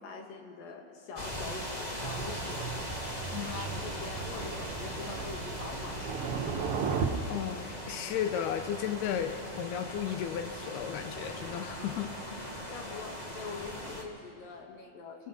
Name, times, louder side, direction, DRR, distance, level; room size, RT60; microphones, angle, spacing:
voice 1, 0.0-2.7 3.0-3.1 3.4-6.3 12.7-15.3, left 5 dB, 60° left, 2 dB, 3.6 m, -44 dB
sound 1, 1.1-14.0, equal, 45° left, 0.5 m, -40 dB
Thunder, 2.0-7.1, right 6 dB, 85° right, 1.2 m, -36 dB
voice 2, 7.3-12.1, left 9 dB, 85° left, 8 dB, 2.8 m, -34 dB
28.0 x 22.0 x 5.6 m, 2.4 s
omnidirectional pair, 4.6 m